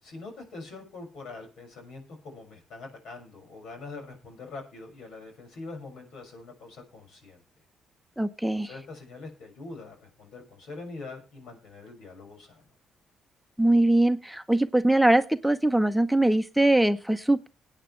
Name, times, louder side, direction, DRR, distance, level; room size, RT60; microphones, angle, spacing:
voice 1, 0.0-7.4 8.4-12.6, left 3 dB, 80° left, 3 dB, 6.2 m, -43 dB
voice 2, 8.2-8.7 13.6-17.5, right 1 dB, ahead, 8 dB, 0.8 m, -22 dB
21.5 x 9.0 x 3.3 m, 0.31 s
cardioid pair, 90°, 0 cm